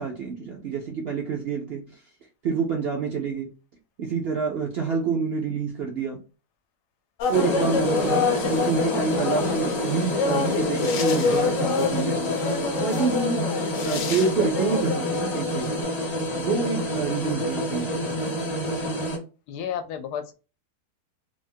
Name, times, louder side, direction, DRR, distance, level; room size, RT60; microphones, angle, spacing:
voice 1, 0.0-2.0 2.4-3.5 4.0-6.2 7.3-8.2 8.5-12.4 12.8-13.5 13.8-15.8 16.3-18.5, right 5 dB, 60° right, 0 dB, 0.6 m, -27 dB
sound 1, 7.2-15.8, left 5 dB, 65° left, 0.9 m, -28 dB
sound 2, 7.3-19.2, left 1 dB, 40° left, 0.6 m, -28 dB
voice 2, 8.0-8.3 19.5-20.3, left 8 dB, 85° left, 9 dB, 1.1 m, -32 dB
3.4 x 2.1 x 2.6 m, 0.32 s
omnidirectional pair, 1.7 m